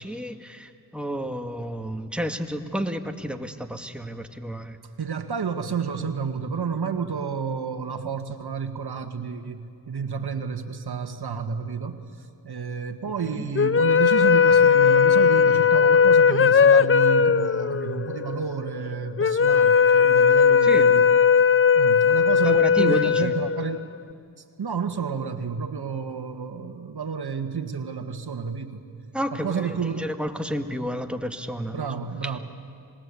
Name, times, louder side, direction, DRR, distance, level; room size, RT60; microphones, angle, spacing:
voice 1, 0.0-4.8 13.2-13.5 20.6-20.9 22.4-23.3 29.1-31.9, equal, ahead, 5 dB, 2.0 m, -31 dB
voice 2, 5.0-21.1 21.7-23.8 24.4-28.8 29.3-30.1 31.7-32.4, right 6 dB, 55° right, 7 dB, 1.7 m, -30 dB
sound 1, 13.6-24.0, left 6 dB, 30° left, 0.6 m, -18 dB
26.5 x 21.0 x 8.5 m, 2.4 s
cardioid pair, 45°, 45 cm